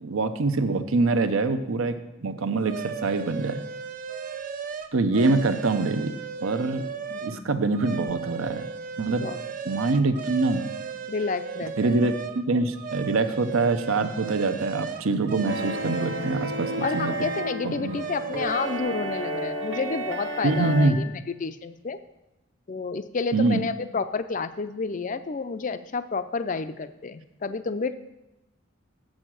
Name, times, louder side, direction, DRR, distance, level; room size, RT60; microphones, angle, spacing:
voice 1, 0.0-3.6 4.9-6.1 6.4-6.9 7.2-8.6 9.0-9.3 9.6-10.7 11.8-17.1 17.6-18.0 20.4-21.0 23.3-23.6, right 3 dB, 80° right, 9 dB, 0.7 m, -24 dB
sound 1, 2.6-7.4 7.7-12.4 12.7-17.5 17.9-18.8, right 6 dB, 40° right, 0.5 m, -35 dB
voice 2, 7.1-7.5 9.0-9.4 9.7-9.8 11.1-11.9 16.8-22.0 22.7-27.9, left 4 dB, 35° left, 11 dB, 0.4 m, -30 dB
sound 2, 15.5-20.9, equal, 60° right, 1.1 m, -32 dB
7.3 x 6.4 x 7.6 m, 0.97 s
head